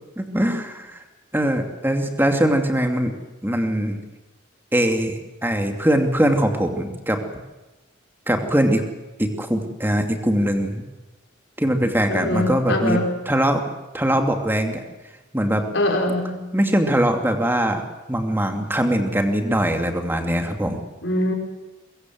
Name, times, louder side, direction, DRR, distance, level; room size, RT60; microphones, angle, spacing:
voice 1, 0.2-1.0 1.3-3.1 3.4-4.0 4.7-5.1 5.4-7.2 8.3-8.8 9.2-10.8 11.6-13.0 13.3-13.6 13.9-14.8 15.3-15.6 16.5-17.8 18.1-20.8, right 1 dB, 10° right, 4 dB, 2.5 m, -21 dB
voice 2, 12.1-13.1 15.7-16.4 21.0-21.3, left 1 dB, 65° left, 2 dB, 5.2 m, -22 dB
23.5 x 22.5 x 7.9 m, 1.1 s
head